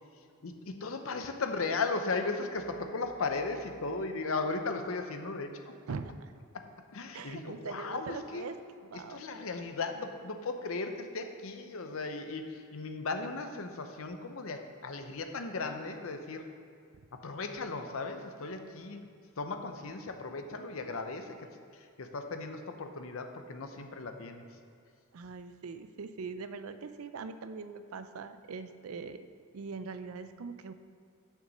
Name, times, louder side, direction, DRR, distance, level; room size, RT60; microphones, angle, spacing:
voice 1, 0.4-5.6 6.5-6.6 6.9-8.4 9.1-16.5 17.2-19.1 19.4-21.5 21.7-24.4, left 3 dB, 70° left, 6 dB, 0.7 m, -36 dB
voice 2, 5.9-6.3 7.1-8.6 8.9-9.2 25.1-29.3 29.5-30.7, right 4 dB, 85° right, 11 dB, 0.5 m, -42 dB
6.7 x 6.1 x 6.1 m, 2.4 s
head